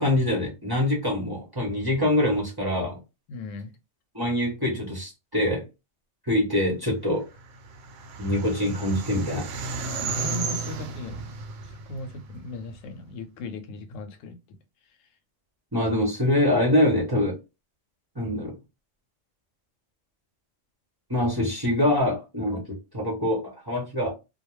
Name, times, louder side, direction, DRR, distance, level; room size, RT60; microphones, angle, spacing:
voice 1, 0.0-3.0 4.1-5.6 6.3-7.3 8.2-9.5 15.7-17.3 18.2-18.5 21.1-22.6 22.9-24.1, left 1 dB, 20° right, 0.7 m, -24 dB
voice 2, 3.3-3.7 10.0-11.4 11.7-14.6, left 2 dB, 90° left, 0.9 m, -37 dB
sound 1, 7.4-12.8, right 4 dB, 85° right, 0.9 m, -34 dB
2.3 x 2.2 x 3.0 m
omnidirectional pair, 1.3 m